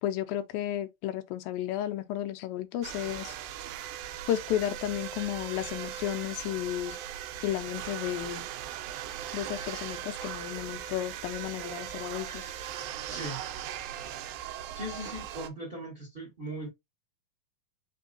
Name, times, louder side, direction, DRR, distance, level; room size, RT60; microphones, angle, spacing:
voice 1, 0.0-3.4 4.3-7.0 7.4-8.4 9.3-12.5, left 12 dB, 85° left, 2.4 m, -33 dB
sound 1, 2.8-15.5, right 10 dB, 85° right, 2.5 m, -39 dB
voice 2, 14.7-16.7, equal, 20° right, 1.6 m, -39 dB
5.3 x 3.6 x 2.4 m
omnidirectional pair, 4.1 m